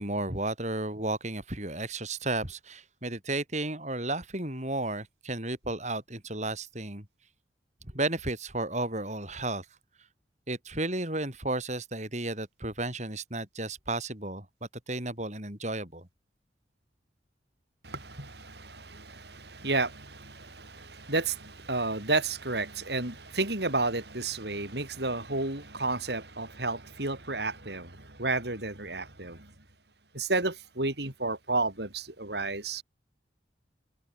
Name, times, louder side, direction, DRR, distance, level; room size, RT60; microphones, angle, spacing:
voice 1, 0.0-7.0 7.9-9.6 10.5-14.4 14.9-16.1, right 2 dB, 40° right, 6.3 m, -33 dB
voice 2, 17.8-29.5 30.1-32.8, right 3 dB, 65° right, 5.3 m, -32 dB
head